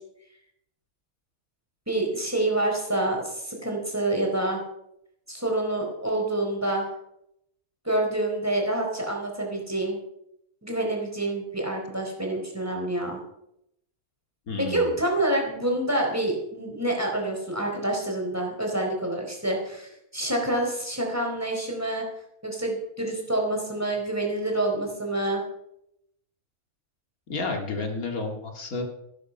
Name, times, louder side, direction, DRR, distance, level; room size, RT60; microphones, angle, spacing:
voice 1, 1.9-4.6 5.3-6.9 7.8-10.0 10.6-13.2 14.6-22.1 22.4-25.4, right 1 dB, 10° right, 0 dB, 4.3 m, -27 dB
voice 2, 14.5-14.9 27.3-28.8, left 3 dB, 85° left, 3 dB, 2.7 m, -31 dB
15.0 x 13.5 x 5.5 m, 0.78 s
omnidirectional pair, 1.5 m